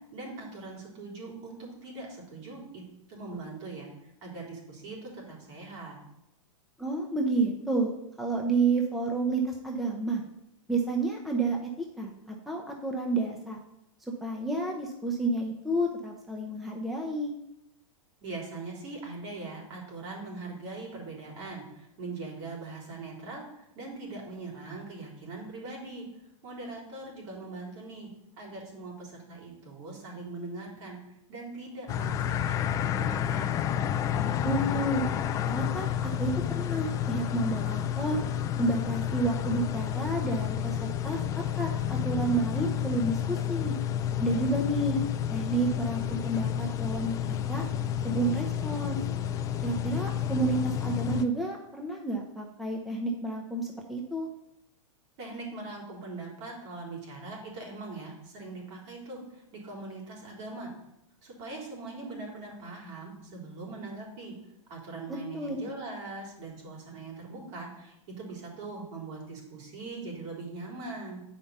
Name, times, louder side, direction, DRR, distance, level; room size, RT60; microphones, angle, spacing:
voice 1, 0.1-2.8 3.1-6.0 18.2-26.1 26.4-28.1 28.4-31.0 31.3-33.6 55.2-60.7 61.2-64.3 64.7-71.2, right 3 dB, 55° right, -2 dB, 3.5 m, -41 dB
voice 2, 6.8-7.9 8.2-10.2 10.7-11.7 12.0-13.6 14.2-17.3 34.4-35.0 35.4-38.2 38.6-41.2 41.6-43.7 44.2-45.0 45.3-47.6 48.0-49.0 49.6-54.3 65.3-65.6, right 2 dB, ahead, 0 dB, 0.7 m, -30 dB
sound 1, 31.9-51.2, left 10 dB, 20° left, 0.3 m, -30 dB
8.5 x 5.1 x 5.4 m, 0.84 s
hypercardioid pair, 145°, 18 cm